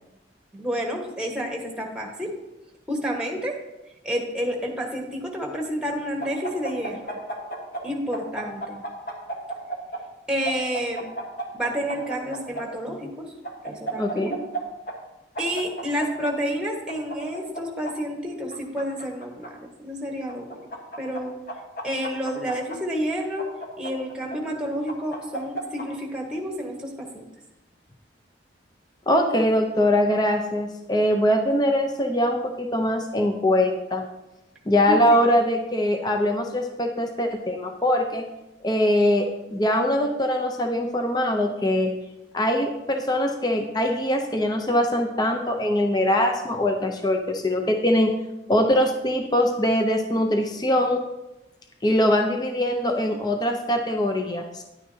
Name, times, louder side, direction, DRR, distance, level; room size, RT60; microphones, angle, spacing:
voice 1, 0.5-2.3 2.9-3.6 4.0-7.1 7.8-8.8 10.3-11.0 11.5-13.3 13.6-14.4 15.4-20.7 21.0-21.3 21.8-23.5 23.8-27.2 34.9-35.2, equal, 5° right, 1 dB, 1.3 m, -29 dB
sound 1, 6.2-7.8 8.1-10.0 10.5-12.6 13.4-14.6 14.9-15.0 15.4-16.3 16.9-17.9 18.5-19.5 20.3-21.2 21.5-22.8 23.4-24.4 24.9-25.9, right 2 dB, 50° left, 1.3 m, -33 dB
voice 2, 14.0-14.4 29.1-34.0 34.7-38.2 38.6-41.9 42.3-48.1 48.5-51.0 51.8-54.6, left 1 dB, 20° left, 4 dB, 0.6 m, -22 dB
10.5 x 9.2 x 2.8 m, 0.96 s
head